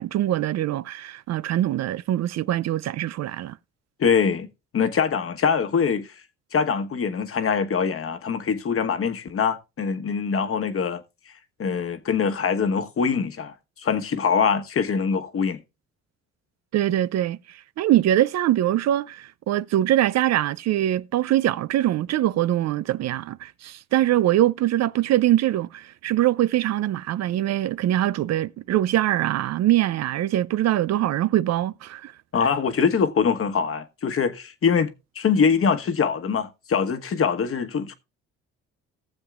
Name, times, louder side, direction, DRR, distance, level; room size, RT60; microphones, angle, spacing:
voice 1, 0.0-3.6 16.7-32.1 32.4-32.5, right 13 dB, 60° right, 0.4 m, -23 dB
voice 2, 4.0-4.5 4.7-6.1 6.5-11.0 11.6-13.5 13.8-15.6 32.3-37.9, left 6 dB, 45° left, 1.2 m, -23 dB
18.0 x 7.1 x 2.4 m
cardioid pair, 90°, 30 cm